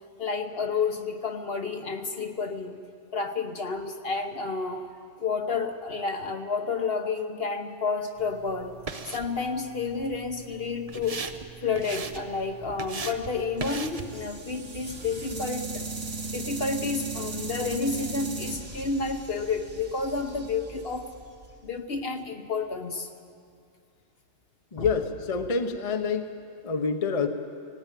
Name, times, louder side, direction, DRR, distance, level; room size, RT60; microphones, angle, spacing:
voice 1, 0.2-2.8 3.1-4.9 5.2-8.8 9.1-11.2 11.6-15.9 16.3-21.2 21.6-23.1 24.8-24.9, left 4 dB, 50° left, 6 dB, 1.2 m, -30 dB
sound 1, 8.2-14.2, right 4 dB, 35° right, 0.8 m, -39 dB
sound 2, 13.6-21.7, right 3 dB, 55° right, 2.0 m, -37 dB
voice 2, 24.7-26.3 26.6-27.3, left 5 dB, 30° left, 6 dB, 1.0 m, -27 dB
18.5 x 17.5 x 9.1 m, 2.4 s
omnidirectional pair, 1.3 m